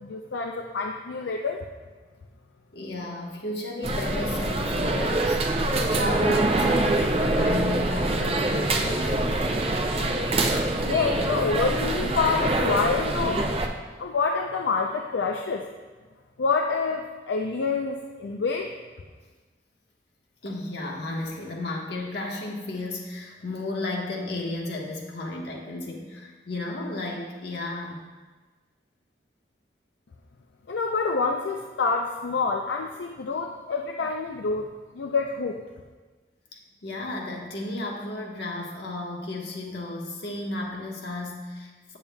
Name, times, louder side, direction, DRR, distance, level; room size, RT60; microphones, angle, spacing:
voice 1, 0.0-1.6 10.8-13.5 14.0-15.6 16.4-18.7 30.7-34.7 34.9-35.6, left 4 dB, 90° left, 2 dB, 0.4 m, -27 dB
voice 2, 2.7-5.5 5.9-9.2 20.4-28.0 36.8-42.0, left 2 dB, 75° left, -1 dB, 1.2 m, -33 dB
sound 1, 3.8-13.7, right 2 dB, 35° right, 0.5 m, -25 dB
8.7 x 7.2 x 2.3 m, 1.3 s
head